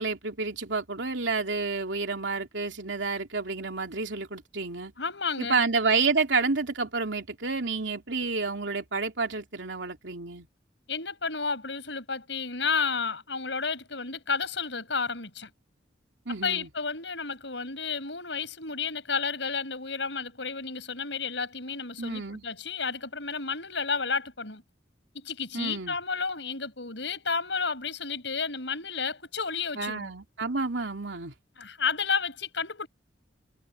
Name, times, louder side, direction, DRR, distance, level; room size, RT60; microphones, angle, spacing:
voice 1, 0.0-4.9 5.4-10.5 16.3-16.7 22.0-22.4 25.5-25.9 29.8-31.3, right 4 dB, 80° right, 3.0 m, -29 dB
voice 2, 5.0-5.6 10.9-15.5 16.4-24.6 25.1-30.1 31.6-32.9, left 5 dB, 75° left, 7.0 m, -31 dB
head